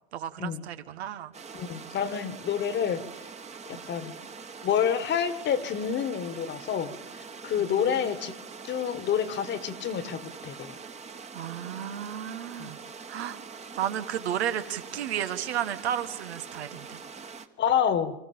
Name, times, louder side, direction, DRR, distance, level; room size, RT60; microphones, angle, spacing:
voice 1, 0.1-1.3 3.7-3.8 7.6-8.1 11.3-12.8 13.1-13.4 13.8-17.0, right 10 dB, 80° right, 10 dB, 1.4 m, -33 dB
sound 1, 1.3-17.5, right 5 dB, 20° right, 1.3 m, -44 dB
voice 2, 1.5-3.0 3.7-4.2 4.6-8.4 8.6-10.8 12.6-12.7 17.6-18.1, left 8 dB, 35° left, 13 dB, 1.6 m, -28 dB
25.5 x 14.0 x 8.8 m, 1.0 s
hypercardioid pair, 105°, 32 cm